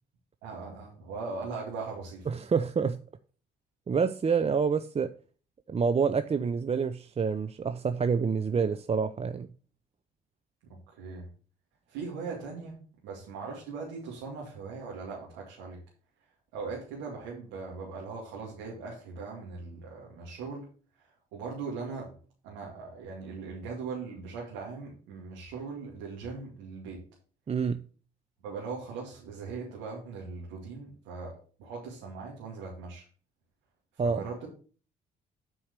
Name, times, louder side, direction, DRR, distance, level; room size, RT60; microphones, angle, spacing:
voice 1, 0.4-2.2 10.7-11.3 11.9-15.8 16.5-20.7 21.0-22.2 22.4-27.0 28.4-33.0 34.0-34.5, right 4 dB, 85° right, 2.5 m, -40 dB
voice 2, 2.3-3.0 3.9-5.1 5.7-9.5 27.5-27.8 34.0-34.2, right 5 dB, 30° right, 0.6 m, -27 dB
8.7 x 4.7 x 6.6 m
hypercardioid pair, 55°, 19 cm